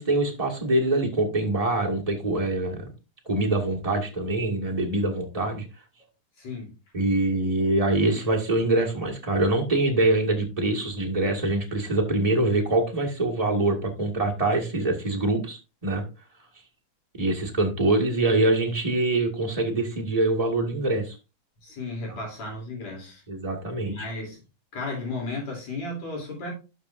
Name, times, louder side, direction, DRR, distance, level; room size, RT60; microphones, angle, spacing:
voice 1, 0.0-2.9 3.2-5.6 6.9-16.0 17.1-21.2 22.1-22.2 23.3-23.9, right 2 dB, 20° right, -1 dB, 1.1 m, -24 dB
voice 2, 6.4-6.7 21.6-23.2 23.8-24.4 24.7-26.5, left 2 dB, 60° left, -2 dB, 4.3 m, -34 dB
12.0 x 6.7 x 2.5 m, 0.30 s
omnidirectional pair, 3.5 m